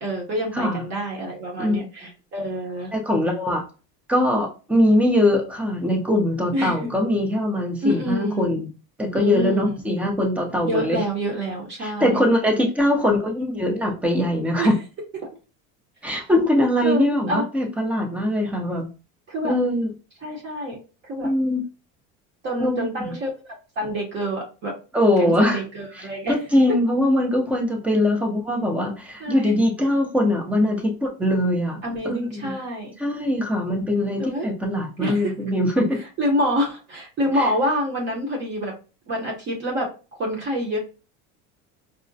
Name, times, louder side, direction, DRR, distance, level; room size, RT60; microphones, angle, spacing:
voice 1, 0.0-2.9 6.5-6.9 7.8-8.6 9.1-9.8 10.6-12.2 14.6-14.7 16.8-17.4 19.3-19.5 20.2-20.8 21.0-21.3 22.4-23.3 23.8-24.7 25.2-26.4 26.7-26.8 29.2-29.6 31.8-32.9 34.2-34.5 35.0-35.3 36.2-38.7 39.1-39.9 40.2-40.8, equal, 35° right, -1 dB, 0.7 m, -27 dB
voice 2, 0.5-0.8 1.6-1.8 2.9-3.6 4.1-8.7 9.0-11.0 11.8-14.7 16.0-18.9 19.4-19.9 21.2-21.6 22.6-23.1 24.9-25.6 25.9-31.8 32.0-32.5 33.0-36.0 37.3-37.5, left 1 dB, 5° right, 2 dB, 0.3 m, -22 dB
4.7 x 2.1 x 2.6 m, 0.34 s
cardioid pair, 170°, 34 cm